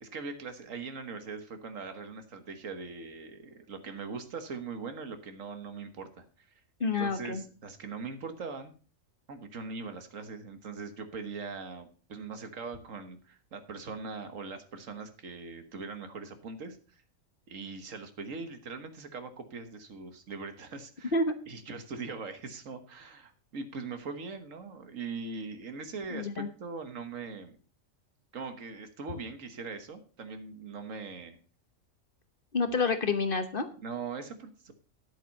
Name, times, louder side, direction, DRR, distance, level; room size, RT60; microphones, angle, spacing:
voice 1, 0.0-6.5 6.8-8.7 9.3-17.0 17.5-21.1 21.5-27.6 28.3-31.4 33.8-34.7, right 4 dB, 75° right, 8 dB, 1.7 m, -41 dB
voice 2, 6.8-7.4 21.1-21.3 26.1-26.5 32.5-33.7, left 3 dB, 45° left, 9 dB, 1.1 m, -28 dB
10.5 x 8.1 x 5.3 m, 0.39 s
omnidirectional pair, 1.4 m